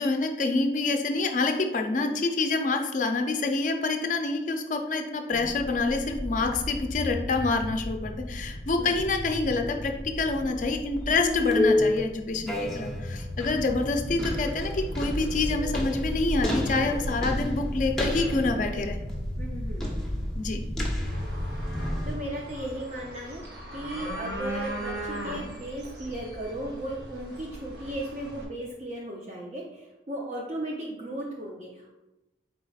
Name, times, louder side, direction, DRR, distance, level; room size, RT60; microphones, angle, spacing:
voice 1, 0.0-19.1 20.4-20.6, left 3 dB, 45° left, 5 dB, 0.4 m, -27 dB
sound 1, 5.3-22.2, left 1 dB, 5° left, 0.7 m, -31 dB
voice 2, 12.6-13.0 19.4-19.9 22.0-23.4 23.7-32.0, right 1 dB, 40° right, -3 dB, 0.5 m, -36 dB
sound 2, 21.0-28.4, right 1 dB, 70° right, 0.9 m, -38 dB
4.7 x 4.0 x 2.3 m, 0.99 s
head